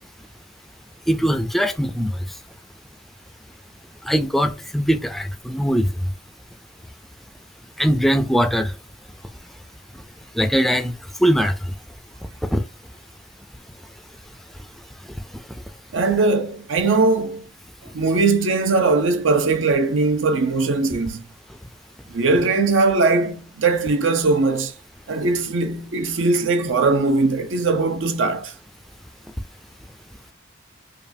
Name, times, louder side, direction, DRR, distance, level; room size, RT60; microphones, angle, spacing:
voice 1, 1.1-2.1 4.1-5.9 7.8-8.7 10.4-10.9 11.2-11.5 12.5-12.6, equal, ahead, 0.3 m, -20 dB
voice 2, 15.9-17.4 17.9-21.2 22.1-24.7 25.1-28.5, right 3 dB, 80° right, 0.6 m, -20 dB
5.2 x 2.3 x 2.6 m
head